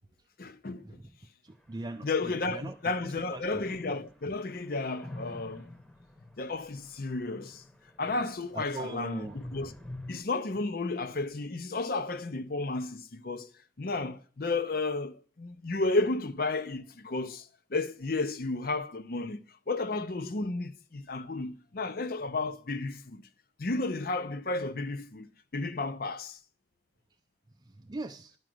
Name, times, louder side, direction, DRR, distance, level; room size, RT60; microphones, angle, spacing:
voice 1, 0.4-0.8 2.0-5.7 6.4-7.6 8.0-9.7 10.1-13.5 13.8-23.3 23.6-26.4, left 3 dB, 50° left, 0.7 m, -33 dB
voice 2, 1.4-2.1 2.5-2.7 3.3-3.6 8.5-9.4 27.8-28.4, right 2 dB, 20° right, 0.5 m, -40 dB
sound 1, 1.5-10.2, left 1 dB, 5° left, 0.9 m, -48 dB
11.0 x 5.0 x 7.7 m
head